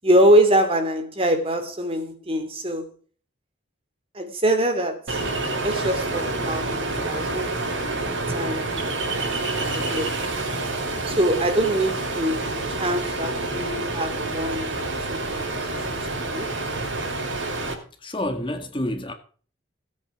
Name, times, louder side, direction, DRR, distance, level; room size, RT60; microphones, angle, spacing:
voice 1, 0.0-2.9 4.1-5.2 5.6-7.5 8.0-9.3 9.7-10.2 11.0-16.0 16.3-16.5, right 1 dB, 30° right, 3.2 m, -24 dB
Ocean, 5.1-17.7, right 2 dB, 80° right, 4.9 m, -28 dB
voice 2, 18.0-19.1, left 1 dB, 25° left, 1.8 m, -28 dB
17.5 x 8.8 x 4.9 m
head